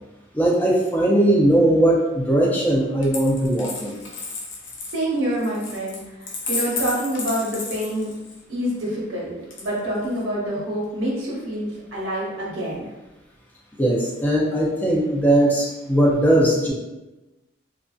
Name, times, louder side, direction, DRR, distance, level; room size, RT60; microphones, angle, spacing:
voice 1, 0.3-4.0 13.8-16.7, right 1 dB, 10° left, -3 dB, 0.4 m, -19 dB
Coin (dropping), 3.0-8.4 9.5-10.2, left 3 dB, 80° left, 0.5 m, -32 dB
voice 2, 4.9-8.1 8.5-12.8, equal, 80° right, -5 dB, 0.9 m, -27 dB
2.5 x 2.3 x 2.2 m, 1.0 s
head